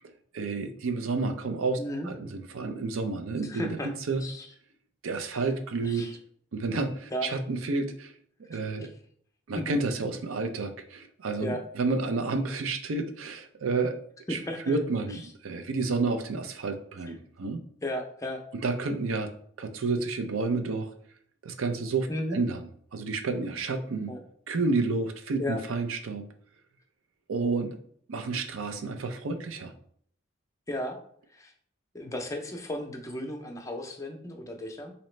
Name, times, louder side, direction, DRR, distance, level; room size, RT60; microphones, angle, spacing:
voice 1, 0.3-3.8 4.1-4.2 5.0-6.1 6.5-8.1 8.5-8.9 9.5-14.0 14.3-14.4 14.7-17.6 18.6-19.3 19.6-20.9 21.4-22.6 22.9-24.1 24.5-26.2 27.3-27.7 28.1-29.7, right 3 dB, 90° right, 8 dB, 0.5 m, -30 dB
voice 2, 1.8-2.1 3.4-3.9 4.2-4.5 5.3-5.4 5.8-6.2 7.1-7.3 8.8-8.9 9.6-9.8 11.4-11.6 14.3-14.8 15.1-15.2 17.8-18.4 22.1-22.4 24.1-24.2 25.4-25.6 30.7-31.0 31.3-31.5 31.9-34.9, left 1 dB, 15° left, 3 dB, 0.5 m, -34 dB
4.0 x 2.8 x 3.2 m, 0.63 s
head